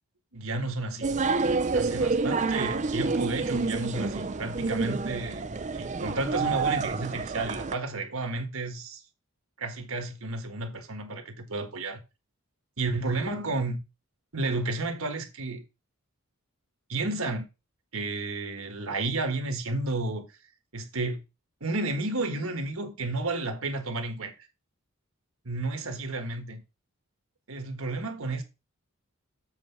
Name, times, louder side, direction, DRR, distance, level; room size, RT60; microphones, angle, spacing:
voice 1, 0.3-1.2 1.7-5.4 5.7-9.0 9.6-12.0 12.8-13.8 14.3-15.6 16.9-17.5 17.9-20.3 20.7-21.2 21.6-24.3 25.4-26.6 27.5-28.4, right 2 dB, 65° right, 1.5 m, -32 dB
sound 1, 1.0-7.8, right 4 dB, 35° right, 0.5 m, -28 dB
7.8 x 4.5 x 5.7 m
head